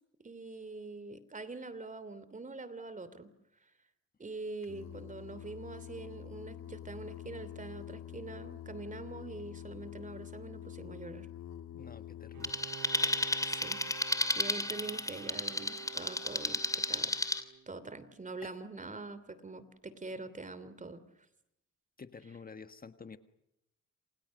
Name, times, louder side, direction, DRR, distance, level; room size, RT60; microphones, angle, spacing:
voice 1, 0.2-3.3 4.2-11.3 13.5-13.8 14.3-17.2 17.7-21.0, right 3 dB, 25° right, 15 dB, 2.9 m, -44 dB
Singing, 4.6-12.5, left 11 dB, 65° left, 1.7 m, -46 dB
voice 2, 11.7-12.7 22.0-23.2, left 5 dB, 30° left, 9 dB, 1.5 m, -49 dB
Bowed string instrument, 12.3-17.9, right 9 dB, 75° right, 2.6 m, -50 dB
sound 1, 12.4-17.4, left 2 dB, 10° left, 3.0 m, -33 dB
28.0 x 27.5 x 6.5 m, 0.84 s
cardioid pair, 90°, 30 cm